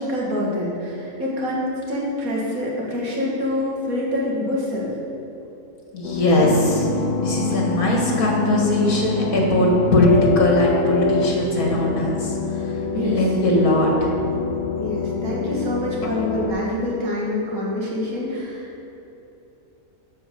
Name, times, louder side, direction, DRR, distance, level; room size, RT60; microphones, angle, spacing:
voice 1, 0.0-4.9 12.9-13.3 14.8-18.8, left 1 dB, 75° right, -4 dB, 2.2 m, -26 dB
voice 2, 5.9-6.9 7.2-12.4 12.9-14.2, left 1 dB, 70° left, -2 dB, 2.1 m, -20 dB
sound 1, 6.0-16.5, left 4 dB, 90° left, 1.3 m, -25 dB
10.0 x 4.5 x 6.6 m, 2.9 s
omnidirectional pair, 1.6 m